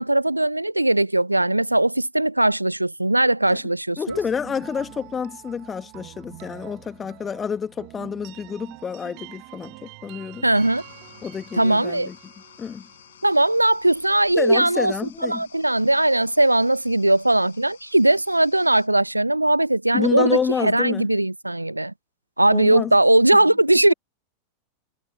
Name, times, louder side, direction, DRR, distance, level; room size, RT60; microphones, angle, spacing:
voice 1, 0.0-4.2 10.4-10.8 11.5-12.1 13.2-14.9 15.2-21.9 22.4-23.9, right 1 dB, 85° right, 0.3 m, -19 dB
voice 2, 4.0-10.5 11.2-12.2 12.6-12.9 14.4-15.4 19.9-21.1 22.5-22.9, left 6 dB, 20° left, 2.0 m, -28 dB
sound 1, 4.1-13.8, right 34 dB, 45° right, 1.5 m, -45 dB
sound 2, 10.5-18.9, left 10 dB, 65° left, 5.3 m, -51 dB
figure-of-eight pair, 90°, 0 cm